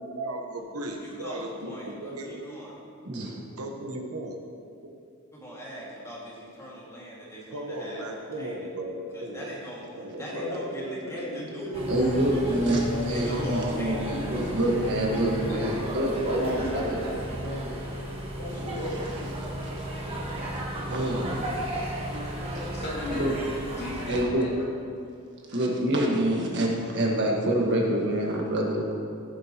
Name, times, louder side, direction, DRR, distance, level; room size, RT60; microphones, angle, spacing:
voice 1, 0.0-2.4 3.6-4.4 4.8-4.9 7.5-9.5 10.0-10.6, right 1 dB, 80° right, 2 dB, 1.2 m, -36 dB
voice 2, 1.0-2.8 5.3-8.1 8.4-8.7 9.1-9.9 10.2-12.6 13.1-14.2, equal, 15° left, -5 dB, 2.1 m, -41 dB
voice 3, 3.0-3.4 11.9-17.0 20.9-21.6 22.1-22.2 22.5-22.7 23.1-23.3 24.1-24.5 25.5-28.9, right 1 dB, 55° right, -1 dB, 1.6 m, -26 dB
voice 4, 10.3-14.7 15.2-15.9 16.2-17.8 18.4-19.8, left 1 dB, 70° left, -4 dB, 2.5 m, -35 dB
sound 1, 11.7-24.2, right 1 dB, 30° right, 1.4 m, -34 dB
voice 5, 22.2-23.4 23.8-24.5, left 1 dB, 50° left, -5 dB, 2.4 m, -37 dB
15.0 x 7.4 x 3.0 m, 2.5 s
head